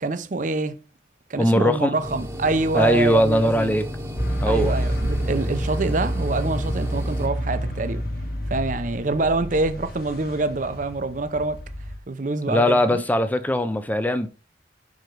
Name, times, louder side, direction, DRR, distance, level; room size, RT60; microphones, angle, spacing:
voice 1, 0.0-0.8 1.3-3.8 4.4-8.0 8.5-11.6 12.1-13.0, right 2 dB, 45° right, 0.5 m, -26 dB
voice 2, 1.4-1.9 2.7-3.9 4.4-4.7 12.5-14.3, equal, 10° left, 0.5 m, -20 dB
sound 1, 2.0-7.3, equal, 15° right, 0.9 m, -33 dB
sound 2, 4.2-12.0, equal, 50° left, 1.2 m, -28 dB
5.2 x 4.8 x 4.5 m
head